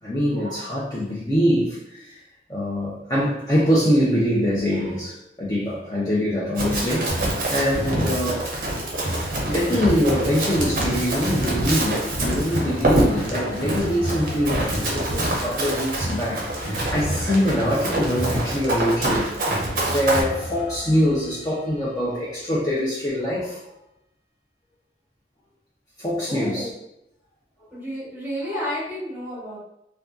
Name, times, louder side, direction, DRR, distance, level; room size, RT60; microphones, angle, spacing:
voice 1, 0.0-2.2 2.5-8.4 9.5-19.6 19.8-23.7 26.0-26.7 29.3-29.4, equal, 20° left, -8 dB, 0.4 m, -24 dB
Run, 6.5-20.2, right 1 dB, 50° right, 0.5 m, -26 dB
sound 1, 7.1-22.0, equal, 60° left, 1.1 m, -33 dB
voice 2, 26.3-26.8 27.7-29.6, equal, 10° right, -8 dB, 0.9 m, -30 dB
2.6 x 2.2 x 2.3 m, 0.83 s
head